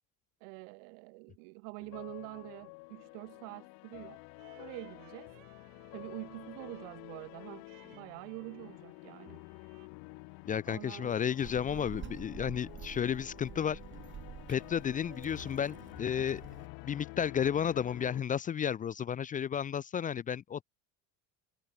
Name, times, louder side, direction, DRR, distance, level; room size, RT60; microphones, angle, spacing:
voice 1, 0.4-4.2 4.6-5.3 5.9-9.4 10.7-11.1, right 38 dB, 90° right, 7.9 m, -46 dB
sound 1, 1.8-18.2, left 31 dB, 75° left, 4.5 m, -49 dB
sound 2, 4.4-9.9, right 19 dB, 60° right, 6.4 m, -63 dB
voice 2, 10.5-13.8 14.5-16.4 16.8-20.6, left 8 dB, 20° left, 0.5 m, -32 dB
Child speech kid speaking, 11.4-16.7, right 9 dB, 30° right, 5.5 m, -48 dB
cardioid pair, 155°, 37 cm